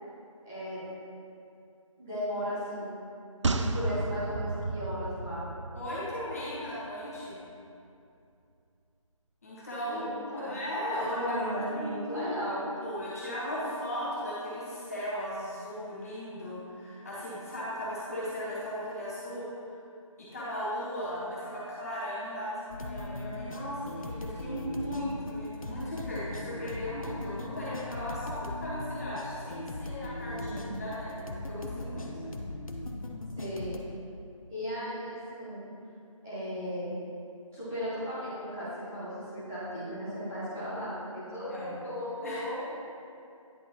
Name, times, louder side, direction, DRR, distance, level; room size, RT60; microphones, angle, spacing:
voice 1, 0.4-0.8 2.0-2.9 3.4-5.4 9.8-10.6 11.0-12.6 30.4-30.7 33.4-33.8 34.5-35.6 36.2-36.9 37.5-42.6, equal, 5° right, -15 dB, 0.7 m, -36 dB
sound 1, 3.4-6.9 7.2-7.3, right 3 dB, 60° right, 0.4 m, -33 dB
voice 2, 5.7-7.4 9.4-12.3 12.8-19.7 20.2-32.1 41.4-41.7 42.2-42.4, equal, 25° left, -9 dB, 1.5 m, -37 dB
sound 2, 22.7-33.8, left 2 dB, 75° left, 0.8 m, -39 dB
10.0 x 4.5 x 3.0 m, 2.6 s
figure-of-eight pair, 170°, 18 cm